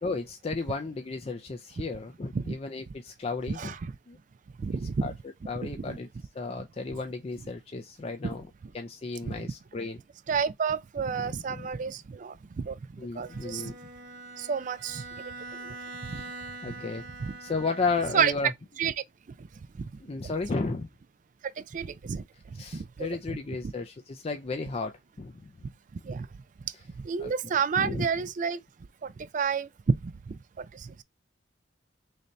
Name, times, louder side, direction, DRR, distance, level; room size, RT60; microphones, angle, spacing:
voice 1, 0.0-3.7 4.1-4.2 5.0-5.1 5.5-6.1 6.3-8.5 8.7-10.0 11.2-11.7 13.0-13.8 16.1-16.3 16.6-17.0 17.4-18.5 20.1-20.9 22.6-25.7 27.2-27.3 27.8-28.1, left 3 dB, 30° left, 0.4 m, -34 dB
voice 2, 3.6-3.9 4.6-5.2 5.6-6.0 9.2-9.5 10.3-13.7 14.4-15.0 15.6-15.7 16.1-16.2 16.7-16.8 17.2-17.3 18.1-18.5 18.8-18.9 19.4-19.5 19.8-19.9 20.2-20.3 21.6-22.2 22.7-23.4 26.0-26.3 27.0-28.6 29.0-30.9, right 6 dB, 40° right, 0.3 m, -30 dB
Bowed string instrument, 13.2-18.5, right 2 dB, 80° right, 1.2 m, -43 dB
3.2 x 2.7 x 4.0 m
head